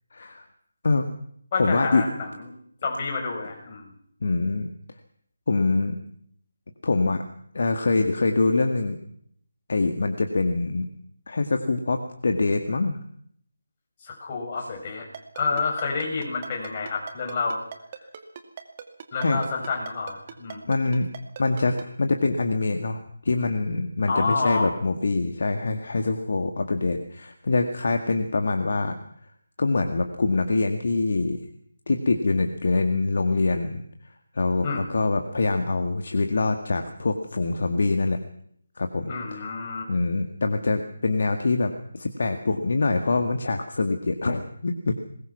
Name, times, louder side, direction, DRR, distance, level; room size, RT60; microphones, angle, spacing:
voice 1, 0.1-0.5 0.8-1.1 1.6-2.0 4.2-4.7 5.5-6.0 6.8-7.2 7.5-9.0 9.7-10.9 11.3-13.0 19.2-19.4 20.7-21.1 21.4-29.0 29.6-31.4 31.9-33.8 34.3-38.2 38.8-39.4 39.9-44.9, left 3 dB, 50° left, 6 dB, 2.0 m, -24 dB
voice 2, 1.5-2.5 2.8-3.9 14.0-15.1 15.3-17.6 19.1-20.6 24.1-24.7 34.6-34.9 39.0-39.9, left 4 dB, 30° left, -1 dB, 7.3 m, -29 dB
Ringtone, 15.1-21.8, right 7 dB, 30° right, 2.3 m, -39 dB
24.0 x 21.0 x 6.1 m, 0.65 s
figure-of-eight pair, 155°, 0 cm